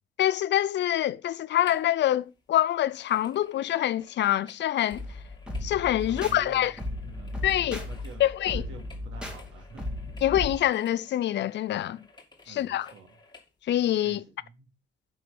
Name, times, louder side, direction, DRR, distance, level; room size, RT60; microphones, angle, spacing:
voice 1, 0.2-5.0 5.6-6.7 7.4-7.9 8.2-8.7 10.2-12.0 12.5-12.9 13.6-14.2, left 12 dB, 60° left, 0.5 m, -25 dB
sound 1, 1.6-2.0 2.2-13.5 14.0-14.1, left 3 dB, 20° left, 2.3 m, -55 dB
sound 2, 4.9-10.6, left 1 dB, 5° right, 2.5 m, -36 dB
voice 2, 6.1-6.7 7.0-7.3 7.8-8.3 8.5-10.0 12.5-13.2 14.0-14.7, right 4 dB, 85° right, 2.8 m, -47 dB
8.5 x 5.6 x 5.0 m
cardioid pair, 90°, 20 cm